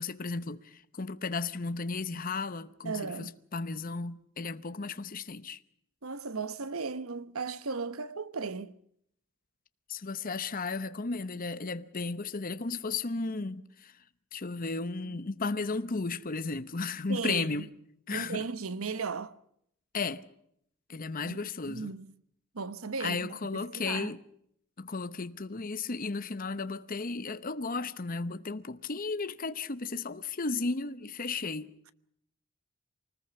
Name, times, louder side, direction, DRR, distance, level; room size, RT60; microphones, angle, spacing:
voice 1, 0.0-5.6 9.9-14.0 14.3-17.7 18.1-18.4 19.9-20.3 20.9-21.9 23.0-24.2 24.8-31.7, left 4 dB, 40° left, 0.8 m, -34 dB
voice 2, 2.8-3.3 6.0-8.7 15.1-15.2 17.1-17.7 18.1-19.4 21.3-22.1 22.5-24.1, right 4 dB, 80° right, 1.1 m, -36 dB
24.5 x 19.5 x 6.9 m
head